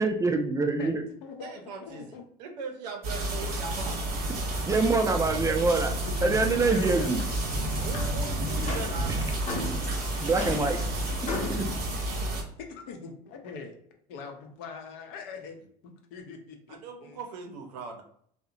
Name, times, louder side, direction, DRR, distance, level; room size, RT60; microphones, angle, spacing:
voice 1, 0.0-1.0 4.7-5.9 6.2-7.2 10.2-10.8 11.5-11.6, right 3 dB, 15° right, 5 dB, 0.4 m, -25 dB
voice 2, 0.8-2.2 6.2-7.3 7.9-8.1 8.5-8.7 10.7-10.8 11.2-11.7 12.6-13.8 14.1-15.6 15.8-17.2, left 5 dB, 70° left, 3 dB, 0.6 m, -43 dB
voice 3, 1.4-2.1 2.4-4.6 7.8-9.3 16.7-18.0, right 5 dB, 85° right, 4 dB, 0.6 m, -40 dB
sound 1, 3.0-12.4, right 1 dB, 45° right, 1.0 m, -30 dB
sound 2, 6.8-11.9, left 2 dB, 35° left, 0.8 m, -37 dB
2.7 x 2.1 x 2.5 m, 0.65 s
hypercardioid pair, 75°, 21 cm